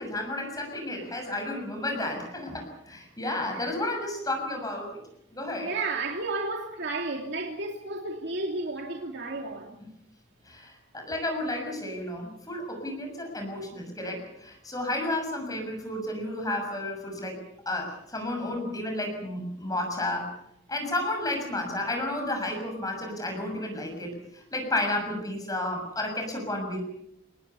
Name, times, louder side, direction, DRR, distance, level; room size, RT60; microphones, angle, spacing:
voice 1, 0.0-5.0 5.3-5.7 10.4-20.3 20.7-26.8, left 1 dB, 20° left, 3 dB, 6.6 m, -32 dB
voice 2, 5.6-9.8, right 3 dB, 60° right, 1 dB, 2.9 m, -32 dB
27.0 x 20.0 x 7.0 m, 0.78 s
head